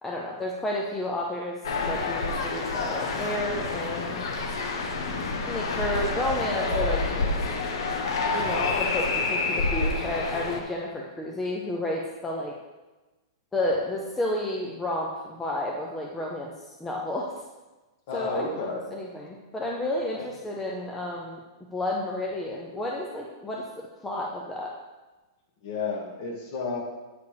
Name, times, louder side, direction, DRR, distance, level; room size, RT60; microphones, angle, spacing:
voice 1, 0.0-4.2 5.5-7.0 8.3-12.6 13.5-16.5 16.8-17.3 18.1-21.4 21.7-24.7, left 1 dB, 5° left, -2 dB, 0.5 m, -31 dB
sound 1, 1.6-10.6, left 3 dB, 65° left, 1.1 m, -28 dB
voice 2, 18.1-18.9 20.1-20.3 25.6-26.8, left 4 dB, 40° left, 1 dB, 1.5 m, -31 dB
8.1 x 4.8 x 5.0 m, 1.2 s
supercardioid pair, 170°, 3 cm